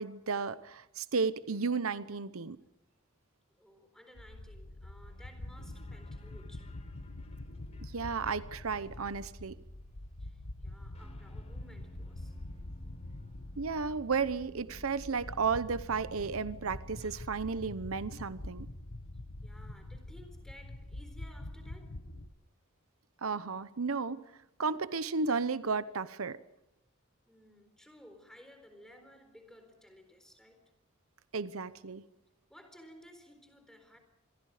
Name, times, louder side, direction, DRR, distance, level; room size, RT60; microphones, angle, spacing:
voice 1, 0.0-2.6 7.8-9.6 13.6-18.7 23.2-24.2 24.6-26.4 31.3-32.0, right 5 dB, 85° right, 0.9 m, -33 dB
voice 2, 3.6-6.7 10.2-12.3 19.4-22.1 27.3-30.7 32.5-34.0, equal, 5° left, 4.0 m, -57 dB
sound 1, 4.2-22.3, left 1 dB, 85° left, 1.6 m, -45 dB
sound 2, 5.0-17.8, left 1 dB, 30° left, 4.4 m, -62 dB
27.0 x 22.0 x 5.0 m
head